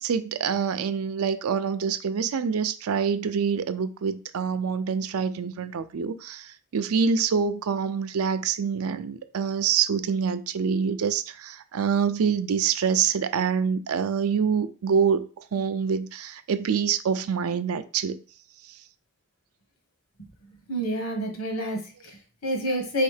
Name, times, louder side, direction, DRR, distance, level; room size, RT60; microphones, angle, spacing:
voice 1, 0.0-18.2, right 6 dB, 75° right, 0.4 m, -26 dB
voice 2, 20.7-23.0, equal, 70° left, 1.3 m, -28 dB
3.9 x 3.2 x 3.2 m
head